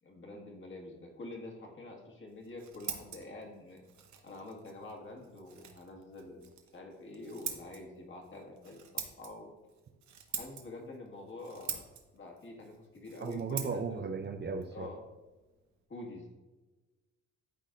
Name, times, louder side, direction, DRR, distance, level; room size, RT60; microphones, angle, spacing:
voice 1, 0.0-3.8 4.2-9.5 10.3-11.9 12.1-14.0 14.7-15.0 15.9-16.4, left 2 dB, 40° left, 0 dB, 1.8 m, -47 dB
Scissors, 2.3-15.8, right 8 dB, 70° right, 1.1 m, -46 dB
voice 2, 13.2-14.9, right 5 dB, 35° right, 6 dB, 0.5 m, -36 dB
12.0 x 4.1 x 2.5 m, 1.2 s
cardioid pair, 90°, 30 cm